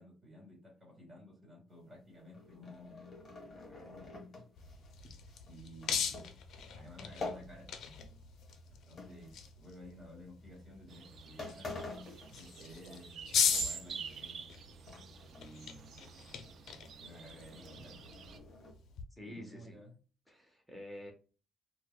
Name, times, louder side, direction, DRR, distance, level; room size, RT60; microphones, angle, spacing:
voice 1, 0.0-3.1 3.7-4.4 5.5-6.3 6.7-7.7 8.9-11.7 12.3-14.4 15.3-16.2 17.0-18.0 19.2-20.0, equal, 20° right, -2 dB, 1.7 m, -54 dB
sound 1, 2.0-8.1 8.4-9.9 10.5-10.7 11.1-11.2 11.4-13.1 13.4-14.6 14.9-15.5 15.8-15.9 16.3-18.7, left 3 dB, 35° left, 1.2 m, -48 dB
sound 2, 4.6-19.0, left 7 dB, 65° left, 0.5 m, -40 dB
sound 3, 10.9-18.4, right 7 dB, 50° right, 0.3 m, -47 dB
voice 2, 19.1-19.8 20.3-21.1, left 1 dB, ahead, 1 dB, 0.8 m, -48 dB
4.6 x 2.2 x 2.2 m, 0.35 s
cardioid pair, 155°, 0 cm